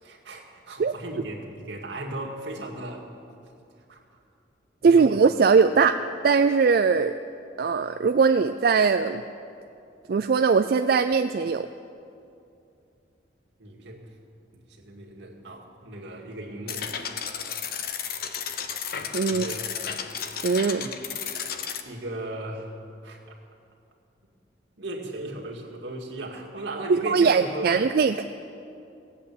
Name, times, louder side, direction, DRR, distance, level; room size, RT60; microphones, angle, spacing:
voice 1, 0.0-3.1 3.9-4.0 4.8-5.2 13.6-14.1 14.5-16.9 19.3-19.6 20.8-20.9 21.8-23.4 24.8-27.9, right 2 dB, 80° right, -1 dB, 2.1 m, -36 dB
voice 2, 4.8-6.0 6.2-7.1 7.6-9.2 10.1-11.7 19.1-19.4 20.4-20.8 26.9-28.2, right 5 dB, 55° right, 8 dB, 0.3 m, -20 dB
sound 1, 16.7-21.8, left 7 dB, 55° left, 0.8 m, -33 dB
17.5 x 8.2 x 8.4 m, 2.6 s
head